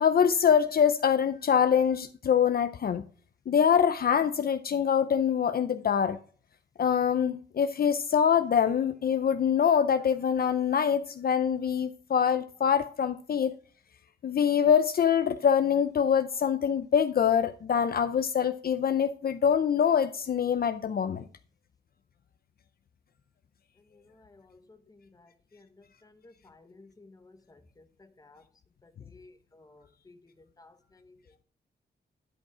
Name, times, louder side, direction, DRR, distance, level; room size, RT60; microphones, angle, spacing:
voice 1, 0.0-3.0 3.5-6.2 6.8-13.5 14.2-21.2, left 8 dB, 55° left, 0.5 m, -24 dB
voice 2, 25.2-25.6 26.2-27.6 28.2-28.4 29.1-30.1 30.6-30.7, left 3 dB, 20° left, 1.0 m, -55 dB
11.5 x 5.2 x 4.8 m
wide cardioid pair, 155°, 18 cm